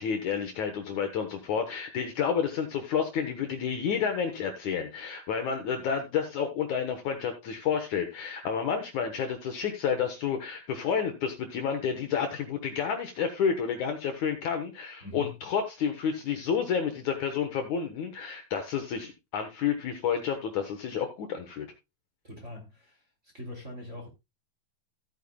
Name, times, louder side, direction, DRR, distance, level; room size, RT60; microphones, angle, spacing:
voice 1, 0.0-21.7, left 7 dB, 65° left, 2.2 m, -30 dB
voice 2, 15.0-15.3 22.2-24.1, left 1 dB, 20° right, 2.5 m, -42 dB
15.5 x 9.1 x 2.3 m
omnidirectional pair, 4.3 m